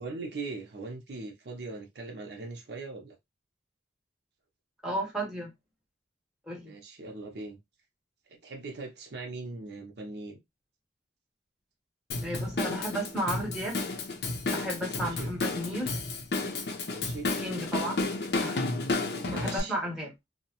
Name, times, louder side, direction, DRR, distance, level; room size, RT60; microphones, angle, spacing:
voice 1, 0.0-3.2 6.6-7.6 8.3-10.4 14.9-15.3 16.9-17.3 19.2-19.7, right 3 dB, 65° right, 0.6 m, -40 dB
voice 2, 4.8-5.5 6.5-6.7 12.2-13.8 14.5-15.9 17.4-18.1 18.4-20.1, right 1 dB, 5° right, 0.8 m, -34 dB
Drum kit / Drum, 12.1-19.6, left 3 dB, 60° left, 0.5 m, -32 dB
2.8 x 2.0 x 2.8 m
head